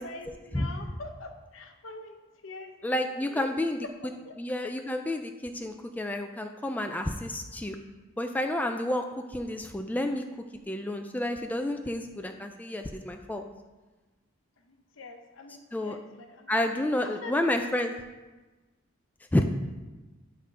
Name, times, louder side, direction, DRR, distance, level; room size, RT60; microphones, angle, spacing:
voice 1, 0.0-3.5 4.2-4.3 14.7-17.6 19.3-19.4, left 2 dB, 70° left, 5 dB, 0.8 m, -45 dB
voice 2, 2.8-3.8 4.4-7.8 8.2-10.2 10.7-13.4 15.7-16.0 16.5-17.9 19.3-19.4, left 1 dB, 10° left, 5 dB, 0.3 m, -30 dB
8.8 x 3.6 x 5.4 m, 1.2 s
head